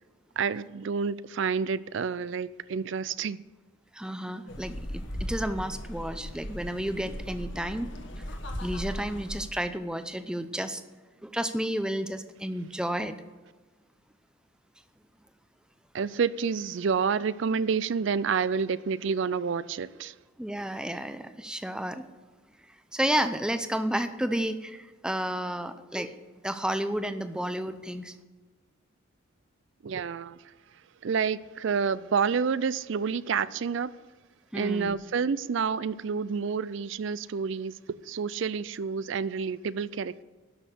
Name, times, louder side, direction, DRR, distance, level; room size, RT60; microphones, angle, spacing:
voice 1, 0.4-3.4 15.9-20.1 29.8-30.4 31.0-33.9 34.5-40.2, right 6 dB, 65° right, 0.4 m, -29 dB
voice 2, 3.9-7.9 8.2-8.3 8.6-10.8 11.2-13.1 20.4-22.0 22.9-26.2 26.4-28.1 34.5-35.0, right 1 dB, 5° right, 0.6 m, -31 dB
sound 1, 4.5-9.4, equal, 65° left, 1.5 m, -37 dB
12.0 x 6.3 x 6.8 m
head